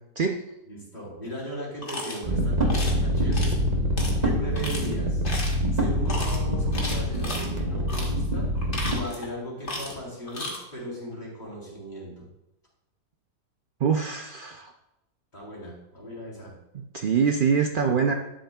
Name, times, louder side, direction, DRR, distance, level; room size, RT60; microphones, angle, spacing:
voice 1, 0.6-3.5 4.2-5.2 5.7-8.5 8.9-12.3 15.3-16.5, equal, 25° left, -5 dB, 3.9 m, -37 dB
sound 1, 1.8-2.2 2.7-3.0 3.3-3.6 4.0-4.1 4.6-4.9 5.2-5.6 6.1-6.4 6.7-7.5 7.9-8.1 8.6-9.3 9.6-10.0 10.3-10.6, left 2 dB, 45° left, 1.9 m, -34 dB
sound 2, 2.2-9.0, equal, 30° right, 1.1 m, -25 dB
voice 2, 13.8-14.7 16.7-18.1, right 6 dB, 75° right, 3 dB, 0.4 m, -24 dB
12.0 x 10.5 x 2.3 m, 0.93 s
omnidirectional pair, 1.7 m